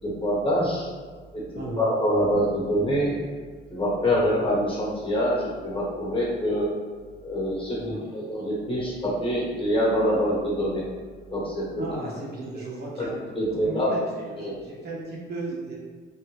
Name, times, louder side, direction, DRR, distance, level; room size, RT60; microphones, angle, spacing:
voice 1, 0.0-0.9 1.3-1.4 1.8-3.2 3.7-6.7 7.2-10.8 11.3-11.7 13.0-13.1 13.3-13.9 14.4-14.7, equal, 25° left, -5 dB, 1.2 m, -25 dB
voice 2, 7.8-8.1 11.8-13.1 13.6-15.8, right 2 dB, 55° right, -4 dB, 1.0 m, -35 dB
3.4 x 2.5 x 3.0 m, 1.5 s
cardioid pair, 90°, 20 cm